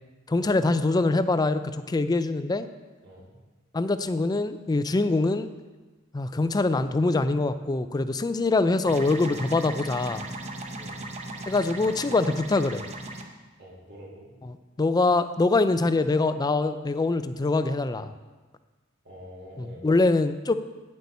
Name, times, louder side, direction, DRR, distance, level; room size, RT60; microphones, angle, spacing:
voice 1, 0.3-2.7 3.7-5.5 6.1-10.2 11.5-12.8 14.4-18.1 19.6-20.5, left 3 dB, 20° left, 11 dB, 0.4 m, -24 dB
sound 1, 8.8-13.2, right 2 dB, 30° right, 0.8 m, -37 dB
voice 2, 10.7-11.0 13.6-14.3 19.0-19.9, equal, 55° right, -5 dB, 2.8 m, -46 dB
9.7 x 7.9 x 4.2 m, 1.3 s
head